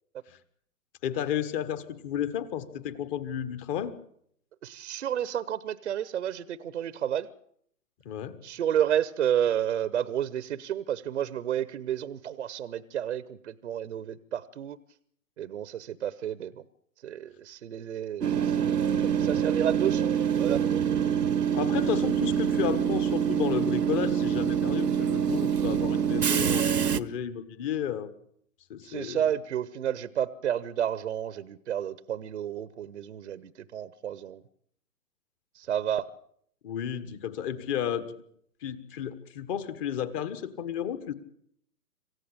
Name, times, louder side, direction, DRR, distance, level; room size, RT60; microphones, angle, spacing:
voice 1, 1.0-3.9 8.0-8.4 21.5-28.1 28.7-29.3 36.6-38.1 38.6-41.1, left 9 dB, 20° left, 13 dB, 1.4 m, -32 dB
voice 2, 4.6-7.3 8.4-14.8 15.4-16.6 17.0-18.6 19.1-20.6 28.8-34.4 35.5-36.1, right 10 dB, 50° right, 17 dB, 1.0 m, -31 dB
Train / Subway metro underground, 18.2-27.0, right 8 dB, 85° right, 1.3 m, -25 dB
26.5 x 15.5 x 8.6 m, 0.66 s
figure-of-eight pair, 140°, 47 cm